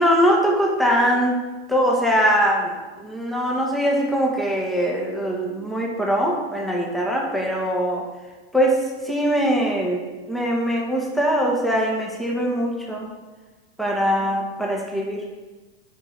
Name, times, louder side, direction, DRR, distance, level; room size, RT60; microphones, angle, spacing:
voice 1, 0.0-1.4 1.7-8.0 8.5-10.0 10.3-13.1 13.8-15.2, equal, ahead, -2 dB, 1.6 m, -22 dB
9.8 x 4.9 x 4.1 m, 1.2 s
supercardioid pair, 115°, 32 cm